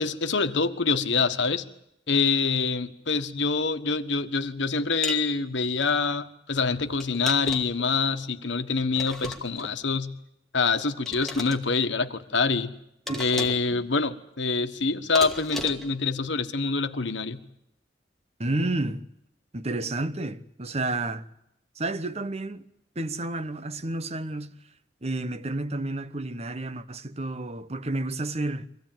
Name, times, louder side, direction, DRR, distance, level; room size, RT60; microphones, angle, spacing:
voice 1, 0.0-1.6 2.1-10.2 10.5-12.7 13.2-17.4, left 4 dB, 85° left, 1.4 m, -26 dB
sound 1, 5.0-5.3 7.0-7.8 9.0-9.7 11.1-11.6 13.1-13.7 15.2-16.0, left 1 dB, ahead, 2.4 m, -36 dB
voice 2, 13.1-13.8 18.4-19.1 19.5-21.3 21.8-22.7 22.9-24.6 25.0-28.7, right 2 dB, 35° right, 1.0 m, -31 dB
24.5 x 17.0 x 9.1 m
head